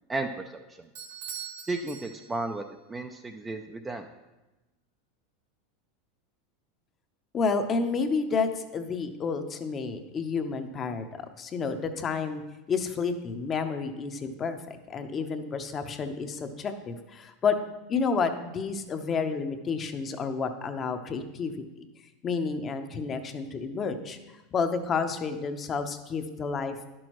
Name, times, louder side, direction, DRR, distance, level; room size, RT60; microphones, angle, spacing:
voice 1, 0.1-0.6 1.7-2.6 2.9-4.1, right 2 dB, 15° right, 4 dB, 0.5 m, -33 dB
Bell / Doorbell, 0.9-2.7, right 8 dB, 80° right, 1.4 m, -42 dB
voice 2, 7.3-12.4 12.7-17.6 17.9-21.8 22.2-24.2 24.5-26.7, left 5 dB, 30° left, 7 dB, 0.8 m, -30 dB
11.0 x 6.2 x 3.1 m, 1.0 s
hypercardioid pair, 105°, 0 cm